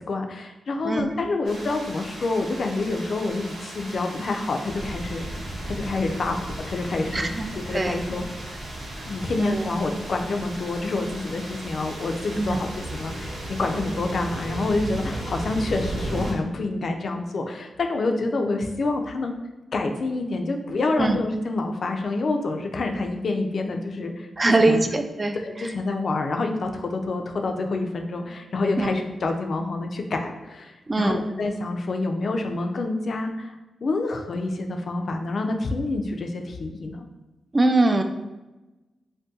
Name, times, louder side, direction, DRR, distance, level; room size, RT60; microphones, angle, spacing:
voice 1, 0.1-5.3 5.6-8.2 9.1-19.4 19.7-24.8 25.3-33.5 33.8-37.1, left 3 dB, 60° left, 4 dB, 0.4 m, -27 dB
sound 1, 1.4-16.3, right 1 dB, 80° right, 1.1 m, -35 dB
voice 2, 7.1-8.0 9.4-9.7 12.4-12.6 21.0-21.2 24.4-25.7 28.8-29.0 30.9-31.3 37.5-38.0, right 2 dB, 30° right, 6 dB, 0.3 m, -23 dB
2.6 x 2.2 x 3.5 m, 1.1 s
cardioid pair, 70°, 0 cm